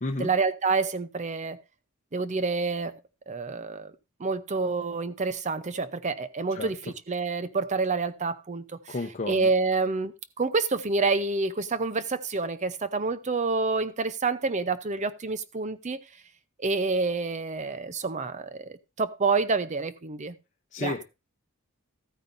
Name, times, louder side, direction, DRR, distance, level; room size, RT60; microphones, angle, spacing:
voice 1, 0.2-1.6 2.1-2.9 3.3-3.9 4.2-6.8 7.1-8.9 9.3-16.0 16.6-20.3 20.8-21.0, right 4 dB, 35° right, 0.6 m, -28 dB
voice 2, 6.5-6.9 8.9-9.5 20.7-21.0, left 2 dB, 35° left, 0.8 m, -32 dB
13.5 x 9.2 x 2.6 m
head